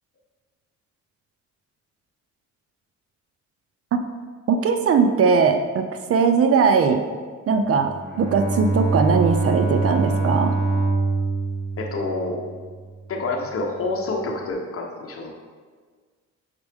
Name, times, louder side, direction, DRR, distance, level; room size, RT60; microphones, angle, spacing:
voice 1, 4.5-7.0 7.5-10.5, right 5 dB, 50° right, 7 dB, 0.6 m, -20 dB
Bowed string instrument, 7.8-13.0, right 3 dB, ahead, 1.6 m, -24 dB
voice 2, 11.8-12.4 13.1-15.3, left 3 dB, 50° left, 1 dB, 1.1 m, -27 dB
6.7 x 4.4 x 3.5 m, 1.6 s
cardioid pair, 90°, 30 cm